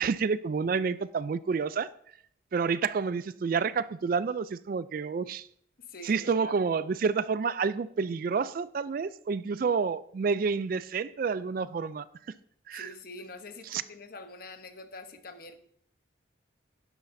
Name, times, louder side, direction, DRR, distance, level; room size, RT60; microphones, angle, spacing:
voice 1, 0.0-1.9 2.5-5.5 6.0-12.1 12.7-12.9 13.7-13.8, right 5 dB, 45° right, 16 dB, 0.3 m, -29 dB
voice 2, 5.8-6.6 12.7-15.6, left 3 dB, 50° left, 8 dB, 0.9 m, -45 dB
11.5 x 11.0 x 2.6 m, 0.64 s
head